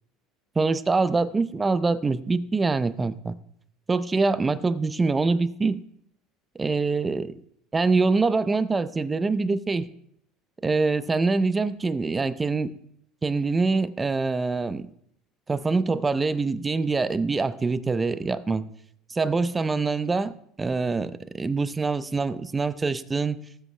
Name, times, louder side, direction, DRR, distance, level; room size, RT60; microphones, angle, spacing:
voice 1, 0.6-3.4 3.9-5.8 6.6-7.4 7.7-9.9 10.6-12.7 13.2-14.9 15.5-18.7 19.1-23.4, right 3 dB, 15° right, 13 dB, 0.5 m, -24 dB
19.0 x 7.8 x 3.3 m, 0.71 s
cardioid pair, 150°, 0 cm